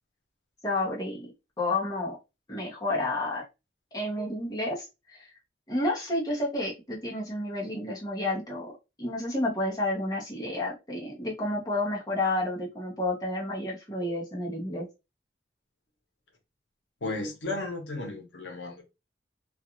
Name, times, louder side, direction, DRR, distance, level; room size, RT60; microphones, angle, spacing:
voice 1, 0.6-1.3 1.6-2.2 2.5-3.4 3.9-5.3 5.7-8.7 9.0-14.9, left 1 dB, 20° left, 0.9 m, -30 dB
voice 2, 17.0-18.8, left 2 dB, 75° left, 0.9 m, -34 dB
2.4 x 2.4 x 2.9 m
head